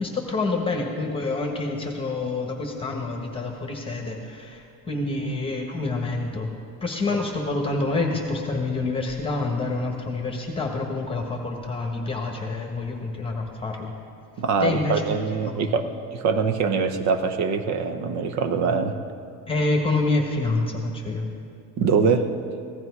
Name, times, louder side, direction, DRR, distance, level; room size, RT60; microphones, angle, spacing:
voice 1, 0.0-6.5 6.8-13.9 14.6-15.0 15.4-15.5 19.5-21.3, left 3 dB, 15° left, 1 dB, 1.3 m, -27 dB
voice 2, 14.4-19.0 21.8-22.3, right 5 dB, 55° right, 8 dB, 1.0 m, -23 dB
15.5 x 12.5 x 4.8 m, 2.4 s
cardioid pair, 145°, 32 cm